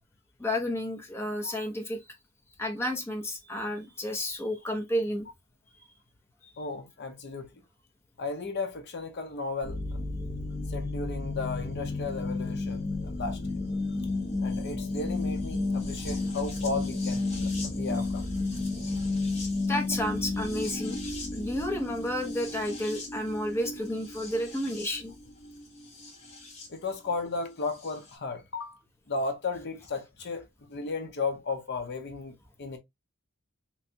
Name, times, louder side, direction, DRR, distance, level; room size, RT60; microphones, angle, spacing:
voice 1, 0.4-2.0 2.6-5.3 19.6-21.0 21.3-25.1, left 1 dB, 10° left, 0.9 m, -31 dB
voice 2, 6.6-7.5 8.2-10.1 10.7-13.4 14.4-18.3 26.7-28.8 29.1-32.8, left 3 dB, 55° left, 0.7 m, -35 dB
sound 1, 9.6-26.7 27.8-27.9, left 3 dB, 35° left, 1.1 m, -32 dB
3.3 x 3.1 x 2.7 m
head